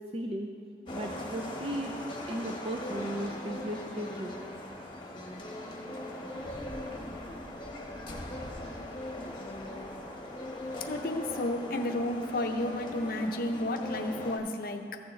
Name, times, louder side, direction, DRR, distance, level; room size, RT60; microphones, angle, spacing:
voice 1, 0.1-0.5 0.9-1.9 2.3-4.3, right 1 dB, 30° right, 2 dB, 0.4 m, -36 dB
sound 1, 0.9-14.4, left 1 dB, 25° left, 1.0 m, -40 dB
voice 2, 10.9-15.0, left 1 dB, 55° left, 5 dB, 0.6 m, -32 dB
14.5 x 6.8 x 3.2 m, 2.1 s
head